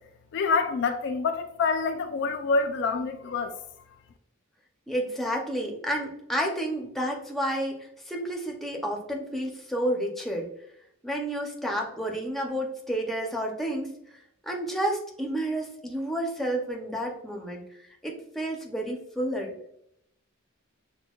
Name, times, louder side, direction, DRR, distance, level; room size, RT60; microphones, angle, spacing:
voice 1, 0.3-3.5, left 4 dB, 55° left, 0.3 m, -26 dB
voice 2, 4.9-10.5 11.0-14.0 14.4-17.7 18.0-19.5, right 1 dB, ahead, 0.6 m, -30 dB
6.0 x 2.2 x 2.3 m
head